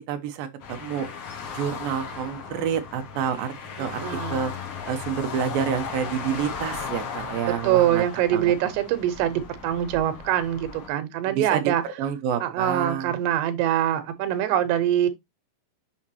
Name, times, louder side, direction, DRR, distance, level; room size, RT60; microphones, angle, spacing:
voice 1, 0.1-1.1 1.5-3.5 3.8-4.0 4.3-4.5 4.9-8.1 8.3-8.5 11.3-11.6 12.0-13.1, right 8 dB, 70° right, 2.5 m, -28 dB
sound 1, 0.6-10.9, left 5 dB, 70° left, 1.4 m, -36 dB
voice 2, 3.8-4.5 7.5-11.8 12.4-15.1, right 11 dB, 90° right, 3.1 m, -24 dB
7.3 x 5.7 x 2.8 m
omnidirectional pair, 4.7 m